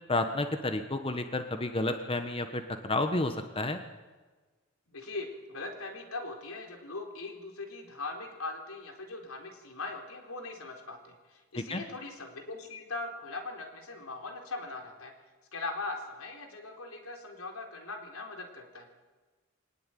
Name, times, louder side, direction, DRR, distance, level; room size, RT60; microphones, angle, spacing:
voice 1, 0.1-3.8 11.5-11.8, left 2 dB, 25° left, 7 dB, 1.4 m, -31 dB
voice 2, 4.9-15.1 15.5-18.9, left 3 dB, 80° left, 3 dB, 4.3 m, -40 dB
23.5 x 19.0 x 9.3 m, 1.3 s
head